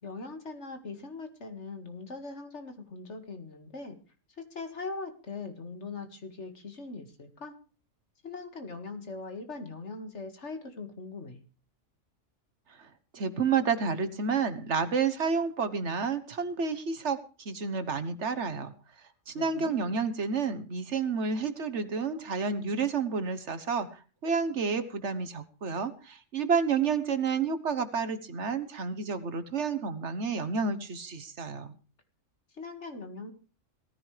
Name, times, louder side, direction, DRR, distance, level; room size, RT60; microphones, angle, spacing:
voice 1, 0.0-4.0 4.4-7.5 8.2-11.4 19.3-20.0 32.5-33.3, left 3 dB, 60° left, 6 dB, 2.3 m, -41 dB
voice 2, 13.1-18.7 19.3-23.9 24.2-31.7, right 5 dB, 65° right, 11 dB, 1.5 m, -30 dB
18.5 x 14.0 x 3.3 m, 0.37 s
omnidirectional pair, 1.3 m